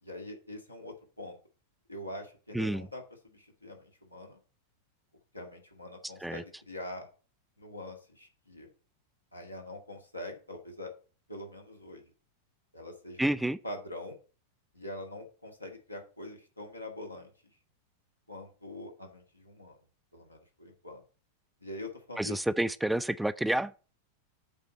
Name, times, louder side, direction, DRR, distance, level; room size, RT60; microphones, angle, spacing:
voice 1, 0.0-1.4 1.9-4.4 5.3-7.1 7.6-8.7 9.3-10.9 11.3-12.1 12.7-13.3 13.6-14.2 14.7-17.3 18.3-19.8 20.1-21.0 21.6-22.4, left 1 dB, 85° left, 1.8 m, -44 dB
voice 2, 2.5-2.9 6.2-6.4 13.2-13.6 22.2-23.8, right 1 dB, 5° right, 0.3 m, -29 dB
8.2 x 4.2 x 7.0 m
figure-of-eight pair, 90°, 0 cm